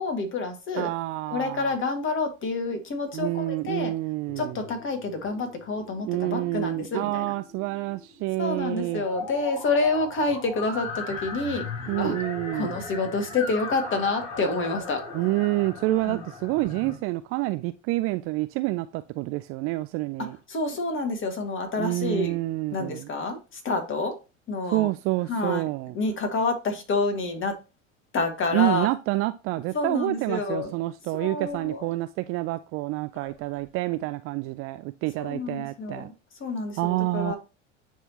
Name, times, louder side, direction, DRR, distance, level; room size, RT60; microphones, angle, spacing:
voice 1, 0.0-0.9 1.3-3.9 4.4-7.3 8.4-11.7 12.0-12.2 12.5-15.0 15.9-16.2 20.2-22.4 22.7-24.2 24.5-24.9 25.3-25.6 25.9-27.6 28.1-28.9 29.7-30.7 31.1-31.9 33.1-33.4 35.2-36.1 36.4-37.4, left 3 dB, 35° left, 1.9 m, -28 dB
voice 2, 0.8-1.7 3.1-4.5 6.1-9.0 11.9-12.8 15.1-20.4 21.8-23.1 24.7-25.9 28.5-36.1 36.8-37.3, right 19 dB, 40° right, 0.4 m, -28 dB
sound 1, 4.3-17.0, left 3 dB, 50° left, 2.8 m, -38 dB
9.3 x 3.6 x 2.9 m
figure-of-eight pair, 75°, 37 cm